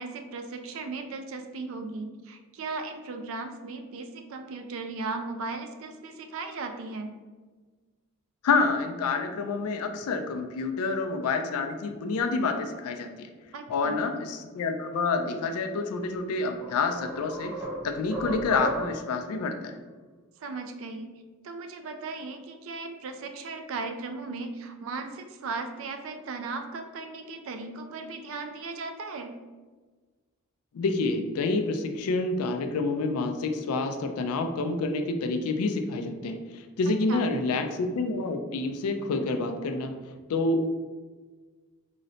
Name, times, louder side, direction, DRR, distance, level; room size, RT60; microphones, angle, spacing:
voice 1, 0.0-7.1 13.5-14.0 20.4-29.4 37.1-37.2, right 3 dB, 65° right, 6 dB, 0.3 m, -37 dB
voice 2, 8.4-13.3 13.7-17.5 17.8-19.8 30.7-40.0 40.3-40.7, left 3 dB, 80° left, 6 dB, 0.4 m, -28 dB
sound 1, 16.0-16.1 16.6-19.2, right 1 dB, 10° right, 0.5 m, -35 dB
3.9 x 2.1 x 2.7 m, 1.4 s
head